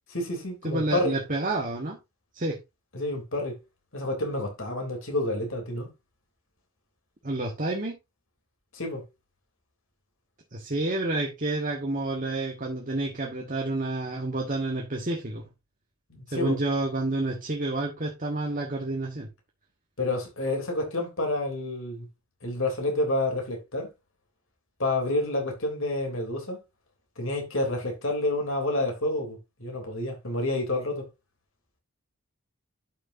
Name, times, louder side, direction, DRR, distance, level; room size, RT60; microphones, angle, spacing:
voice 1, 0.1-1.1 2.9-3.6 3.9-5.9 8.7-9.0 16.1-16.6 20.0-22.1 22.4-23.9 24.8-26.6 27.2-31.0, left 2 dB, 60° left, 3.4 m, -29 dB
voice 2, 0.6-2.0 2.3-2.6 7.2-8.0 10.5-15.5 16.3-19.3, right 2 dB, 35° right, 1.4 m, -29 dB
11.5 x 6.4 x 2.7 m
head